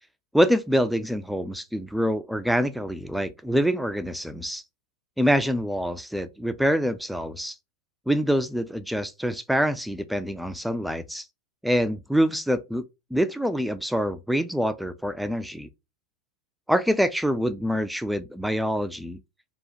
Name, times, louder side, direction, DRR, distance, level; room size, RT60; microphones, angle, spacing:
voice 1, 0.3-4.6 5.2-7.6 8.1-11.3 11.6-12.8 13.1-15.7 16.7-19.2, equal, ahead, 0.3 m, -25 dB
3.4 x 2.4 x 2.8 m
figure-of-eight pair, 90°, 0 cm